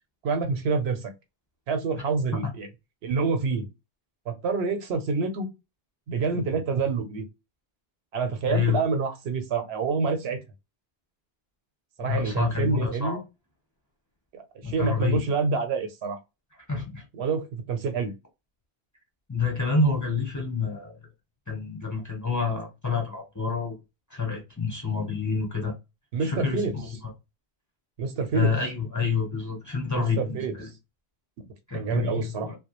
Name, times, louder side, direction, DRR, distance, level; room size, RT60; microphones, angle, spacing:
voice 1, 0.2-1.1 1.7-2.7 3.0-3.7 4.3-5.5 6.1-7.2 8.1-10.4 12.0-13.2 14.3-16.2 17.2-18.1 26.1-26.7 28.0-28.5 30.0-30.5 31.7-32.5, right 4 dB, 85° right, 0.9 m, -27 dB
voice 2, 8.5-8.8 12.0-13.2 14.6-15.2 16.7-17.0 19.3-21.0 21.5-23.8 24.1-25.7 26.2-26.9 28.3-30.7 31.7-32.6, left 4 dB, 20° left, 0.7 m, -28 dB
2.2 x 2.0 x 2.9 m
omnidirectional pair, 1.0 m